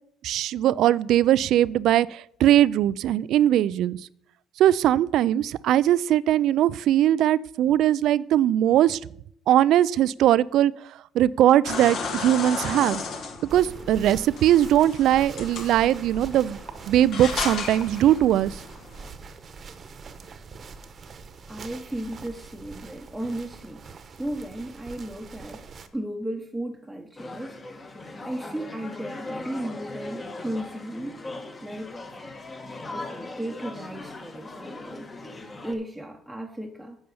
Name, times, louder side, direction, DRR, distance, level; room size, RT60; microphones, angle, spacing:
voice 1, 0.2-4.0 4.6-9.0 9.5-10.7 11.1-13.0 13.5-16.6 16.9-18.6, right 12 dB, 70° right, 20 dB, 0.3 m, -20 dB
sound 1, 11.6-19.1, left 5 dB, 60° left, 1.8 m, -35 dB
sound 2, 13.5-25.9, right 5 dB, 40° right, 1.0 m, -42 dB
voice 2, 21.5-23.8 24.2-25.6 25.9-27.6 28.2-31.2 31.6-32.0 32.9-35.1 35.6-37.0, right 1 dB, ahead, 0 dB, 1.0 m, -35 dB
sound 3, 27.2-35.7, left 2 dB, 25° left, 1.5 m, -39 dB
8.7 x 5.5 x 7.0 m, 0.68 s
supercardioid pair, 80°, 0 cm